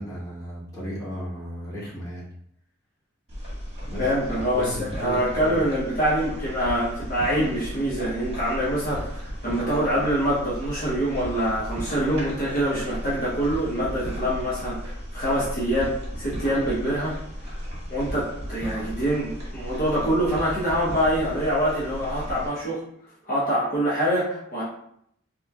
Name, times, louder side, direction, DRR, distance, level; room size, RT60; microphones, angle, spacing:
voice 1, 0.0-2.3 3.8-4.1 4.5-5.6, equal, 20° left, -9 dB, 1.1 m, -35 dB
sound 1, 3.3-22.5, equal, 30° right, 1.3 m, -35 dB
voice 2, 4.0-17.2 17.5-17.6 17.9-22.8 23.3-24.6, equal, 40° left, -8 dB, 0.8 m, -25 dB
3.4 x 3.0 x 2.3 m, 0.71 s
head